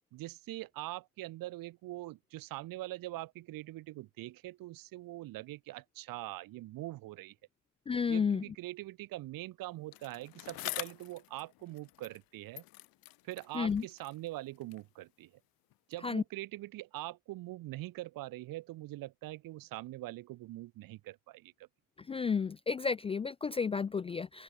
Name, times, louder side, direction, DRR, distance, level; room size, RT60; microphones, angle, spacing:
voice 1, 0.1-7.4 8.1-12.6 13.2-15.3 15.9-21.7, right 17 dB, 70° right, 2.2 m, -43 dB
voice 2, 7.9-8.4 13.5-13.8 16.0-16.2 22.1-24.4, left 6 dB, 15° left, 0.3 m, -32 dB
Bicycle, 9.9-12.3 12.5-14.9 15.7-15.8, left 19 dB, 80° left, 4.0 m, -46 dB
open air
cardioid pair, 130°, 35 cm